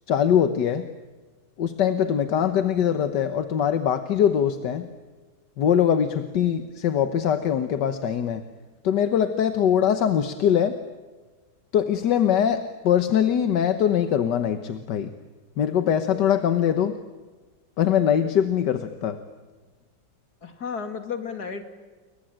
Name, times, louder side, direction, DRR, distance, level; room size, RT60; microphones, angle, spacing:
voice 1, 0.1-0.9 1.6-4.9 5.6-8.4 8.8-10.8 11.7-15.1 15.6-17.0 17.8-19.2, left 9 dB, 80° left, 10 dB, 1.7 m, -22 dB
voice 2, 20.4-21.6, left 6 dB, 65° left, 7 dB, 3.0 m, -32 dB
30.0 x 22.5 x 8.9 m, 1.3 s
omnidirectional pair, 1.8 m